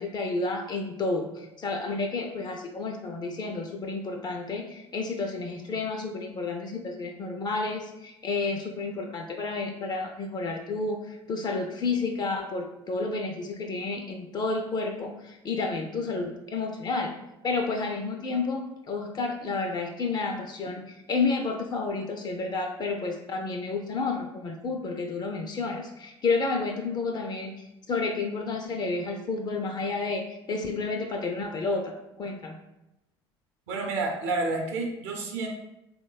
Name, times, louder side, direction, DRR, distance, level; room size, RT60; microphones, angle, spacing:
voice 1, 0.0-17.1 17.4-32.6, left 3 dB, 30° left, 3 dB, 0.3 m, -31 dB
voice 2, 33.7-35.5, right 3 dB, 65° right, 1 dB, 0.6 m, -29 dB
3.2 x 2.1 x 2.2 m, 0.91 s
hypercardioid pair, 65°, 14 cm